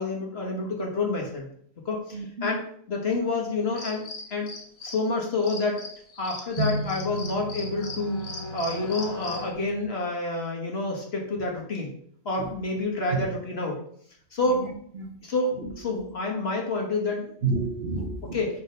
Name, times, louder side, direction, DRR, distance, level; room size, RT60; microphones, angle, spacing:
voice 1, 0.0-1.5 1.8-2.6 2.9-4.0 4.3-4.5 4.8-5.8 6.2-8.2 8.5-11.9 12.2-13.8 14.3-14.6 15.2-17.3 18.3-18.5, left 3 dB, 45° left, 0 dB, 1.5 m, -28 dB
voice 2, 2.1-2.5 12.4-12.5 13.1-13.2 14.4-15.2 15.5-15.7 17.4-18.4, right 3 dB, 50° right, 2 dB, 1.0 m, -31 dB
sound 1, 3.8-5.1 5.4-9.5, left 3 dB, 70° left, 1.7 m, -38 dB
sound 2, 6.6-9.8, right 2 dB, 80° right, 1.3 m, -34 dB
6.2 x 4.3 x 5.1 m, 0.64 s
omnidirectional pair, 1.5 m